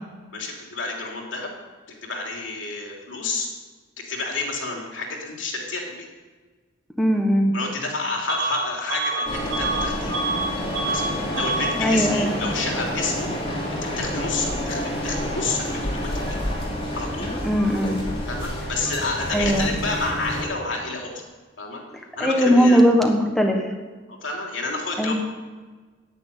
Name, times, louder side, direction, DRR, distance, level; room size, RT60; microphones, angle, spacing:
voice 1, 0.3-1.5 1.9-3.5 4.0-6.1 7.5-10.1 10.8-11.0 11.3-13.3 14.0-16.1 17.0-17.3 18.3-21.2 21.6-21.8 22.2-22.8 24.1-25.1, left 3 dB, 75° left, 0 dB, 3.0 m, -29 dB
voice 2, 7.0-7.5 11.8-12.4 17.3-18.0 19.3-19.7 22.2-23.7 25.0-25.1, equal, ahead, 1 dB, 1.4 m, -19 dB
Bus / Alarm, 8.3-8.6 8.9-10.5 10.7-11.1 11.3-11.7, right 3 dB, 65° right, 3.3 m, -26 dB
sound 1, 9.3-20.4, equal, 30° left, 2.9 m, -29 dB
10.5 x 9.7 x 8.2 m, 1.4 s
head